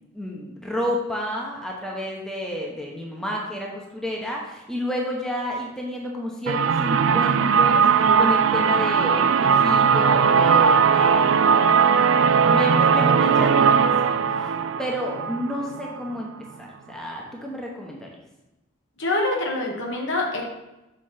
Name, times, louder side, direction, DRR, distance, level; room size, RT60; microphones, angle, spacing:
voice 1, 0.0-11.8 12.3-14.5 14.8-16.3 16.6-18.1, equal, 5° left, -2 dB, 0.9 m, -31 dB
sound 1, 6.5-16.2, right 6 dB, 70° right, 0.3 m, -19 dB
voice 2, 19.0-20.4, left 2 dB, 60° left, 0 dB, 1.4 m, -25 dB
6.7 x 4.0 x 5.7 m, 0.98 s
head